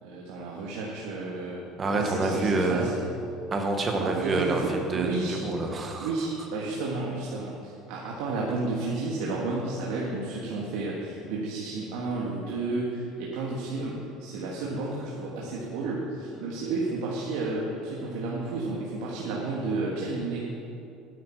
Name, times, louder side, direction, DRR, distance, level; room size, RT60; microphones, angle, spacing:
voice 1, 0.0-1.6 1.9-3.0 4.0-5.4 6.0-20.4, right 3 dB, 85° right, -4 dB, 1.7 m, -32 dB
voice 2, 1.8-2.9 3.5-6.1, right 3 dB, 20° right, 3 dB, 1.2 m, -27 dB
12.5 x 10.0 x 4.6 m, 2.7 s
cardioid pair, 175°, 0 cm